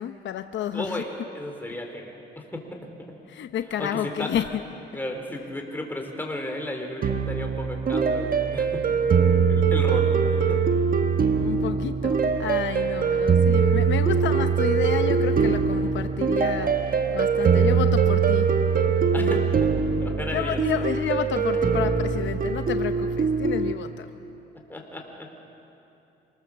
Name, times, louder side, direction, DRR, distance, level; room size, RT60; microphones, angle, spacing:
voice 1, 0.0-1.0 3.3-4.5 11.4-18.5 19.2-19.5 20.3-24.1, left 10 dB, 70° left, 9 dB, 0.8 m, -30 dB
voice 2, 0.7-2.9 3.8-4.3 4.9-8.8 9.4-10.6 19.1-19.7 20.0-20.6 24.7-25.4, left 1 dB, 10° left, 2 dB, 3.8 m, -34 dB
sound 1, 7.0-23.7, right 6 dB, 45° right, 1.3 m, -22 dB
26.5 x 19.5 x 7.3 m, 2.9 s
cardioid pair, 90°, 20 cm